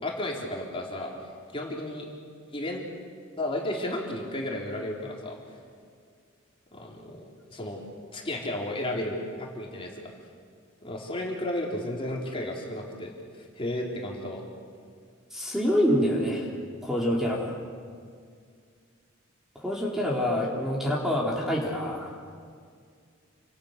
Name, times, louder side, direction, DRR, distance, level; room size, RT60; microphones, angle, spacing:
voice 1, 0.0-1.1 1.5-2.1 2.5-2.8 3.4-5.4 6.7-7.2 7.5-7.8 8.1-9.9 10.8-14.4, left 1 dB, 25° left, -2 dB, 4.0 m, -33 dB
voice 2, 15.3-16.5 16.8-17.6 19.6-22.1, equal, ahead, -3 dB, 3.9 m, -26 dB
29.5 x 26.5 x 6.8 m, 2.1 s
head